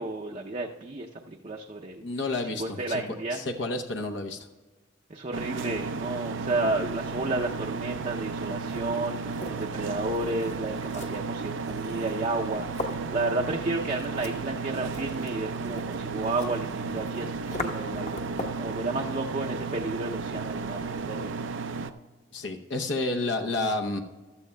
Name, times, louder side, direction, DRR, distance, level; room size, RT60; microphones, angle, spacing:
voice 1, 0.0-2.0 2.4-3.4 5.1-21.5, right 2 dB, 35° right, 1 dB, 0.6 m, -32 dB
voice 2, 2.0-3.0 3.3-4.5 16.9-17.0 22.3-24.0, left 2 dB, 70° left, 4 dB, 0.8 m, -30 dB
sound 1, 5.3-21.9, right 4 dB, 80° right, 0.5 m, -34 dB
sound 2, 8.5-18.7, left 2 dB, 35° left, 0.9 m, -41 dB
15.5 x 12.0 x 2.2 m, 1.3 s
head